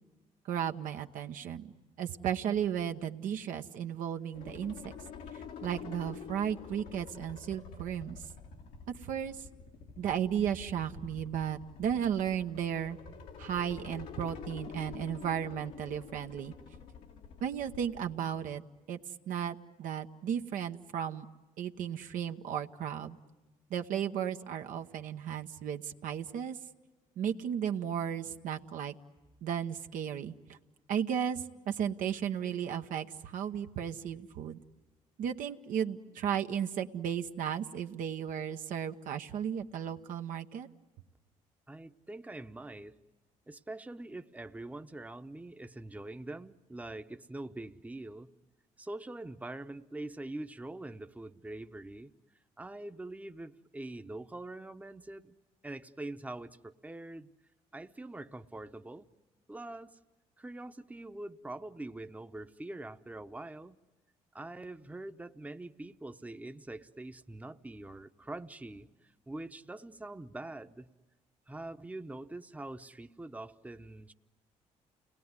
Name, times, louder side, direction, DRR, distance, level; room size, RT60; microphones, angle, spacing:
voice 1, 0.4-1.7 2.0-4.9 5.3-8.2 9.0-9.5 10.0-13.0 13.4-16.5 17.4-18.6 18.9-19.0 19.3-21.3 21.6-23.2 23.7-26.6 27.2-28.9 29.4-30.6 30.9-34.6 35.2-40.7, right 9 dB, 75° right, 6 dB, 0.9 m, -34 dB
sound 1, 4.3-18.1, left 6 dB, 85° left, 1.8 m, -48 dB
voice 2, 41.7-43.0 43.5-48.3 48.8-52.1 52.6-55.4 55.6-57.3 57.7-59.1 59.5-60.0 60.4-63.8 64.3-68.9 69.3-70.9 71.5-74.1, right 2 dB, 10° right, 9 dB, 0.8 m, -44 dB
29.5 x 19.5 x 9.6 m, 1.2 s
supercardioid pair, 70°, 14 cm